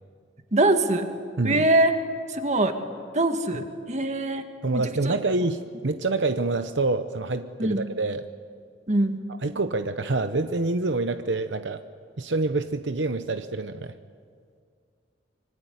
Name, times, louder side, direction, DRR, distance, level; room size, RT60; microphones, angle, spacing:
voice 1, 0.5-1.1 1.4-1.9 2.3-2.7 3.1-4.5 4.7-5.1 7.6-7.9 8.9-9.2, right 2 dB, 40° right, 6 dB, 2.0 m, -23 dB
voice 2, 4.6-8.2 9.4-11.8 12.2-13.9, right 3 dB, 75° right, 9 dB, 0.9 m, -26 dB
25.5 x 24.5 x 9.5 m, 2.1 s
head